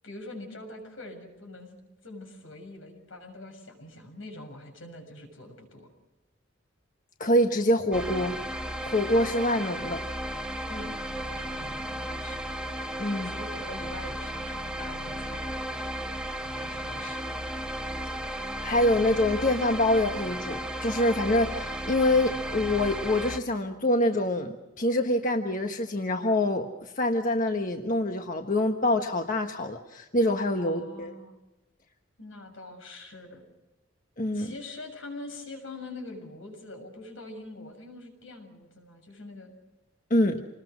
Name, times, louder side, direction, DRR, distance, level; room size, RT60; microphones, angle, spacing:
voice 1, 0.0-5.9 10.7-10.9 11.2-12.4 13.1-15.5 16.4-17.3 30.6-31.4 32.2-33.4 34.3-39.5, left 2 dB, 85° left, 4 dB, 7.0 m, -44 dB
voice 2, 7.2-8.4 8.8-10.0 13.0-13.3 18.1-18.2 18.6-31.1 34.2-34.5 40.1-40.4, left 1 dB, 45° left, 4 dB, 1.4 m, -25 dB
sound 1, 7.9-23.4, right 1 dB, 5° right, 1.3 m, -34 dB
27.5 x 20.5 x 6.3 m, 1.1 s
head